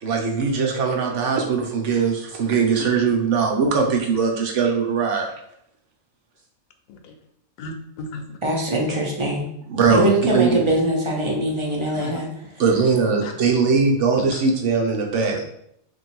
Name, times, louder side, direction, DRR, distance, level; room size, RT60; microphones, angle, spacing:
voice 1, 0.0-5.3 9.7-10.6 12.6-15.4, right 5 dB, 65° right, 1 dB, 0.9 m, -20 dB
voice 2, 7.6-8.2 11.9-12.2 13.2-13.3 14.2-14.4 15.3-15.4, left 3 dB, 80° left, 5 dB, 1.0 m, -35 dB
voice 3, 8.4-9.4 9.9-12.3, right 1 dB, 35° right, -1 dB, 0.5 m, -22 dB
3.0 x 2.6 x 4.2 m, 0.72 s
omnidirectional pair, 1.5 m